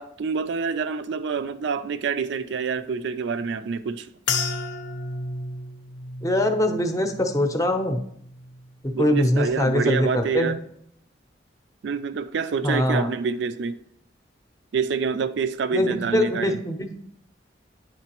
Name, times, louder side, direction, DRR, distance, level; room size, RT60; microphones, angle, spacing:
voice 1, 0.0-4.1 8.9-10.6 11.8-13.8 14.7-16.6, right 5 dB, 70° right, 0.4 m, -27 dB
sound 1, 4.3-8.8 9.1-9.8 10.4-10.6, left 4 dB, 70° left, 0.6 m, -33 dB
voice 2, 6.2-8.0 9.0-10.6 12.6-13.1 15.7-16.9, left 1 dB, 20° left, 0.6 m, -23 dB
9.5 x 3.8 x 2.9 m
head